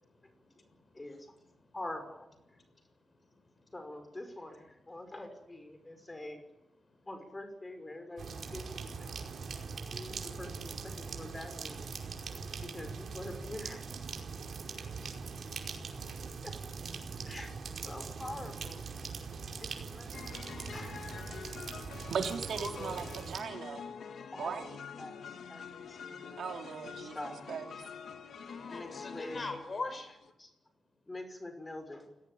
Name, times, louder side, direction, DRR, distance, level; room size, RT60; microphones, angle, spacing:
voice 1, 0.1-0.9 1.6-1.7 2.5-2.7 3.5-3.7 9.6-9.8 12.0-12.4 16.1-16.2 22.6-23.0 26.0-26.4 28.5-30.2, left 3 dB, 35° left, 8 dB, 6.7 m, -44 dB
voice 2, 0.9-1.3 1.7-2.3 3.7-6.4 7.1-9.1 9.9-11.8 12.7-13.8 14.7-14.8 16.4-16.6 17.3-17.5 17.8-18.8 19.6-20.3 20.7-21.2 24.3-24.6 24.9-26.5 27.0-27.5 28.7-29.5 30.4-30.5 31.1-32.1, left 1 dB, 20° left, 7 dB, 6.2 m, -45 dB
sound 1, 8.2-23.4, right 5 dB, 65° right, 5.1 m, -42 dB
sound 2, 20.1-30.3, left 6 dB, 90° left, 2.8 m, -46 dB
voice 3, 22.1-23.9 24.4-24.8 26.4-27.8, right 6 dB, 90° right, 4 dB, 3.7 m, -38 dB
29.0 x 19.0 x 9.1 m, 0.87 s
wide cardioid pair, 130°, 0 cm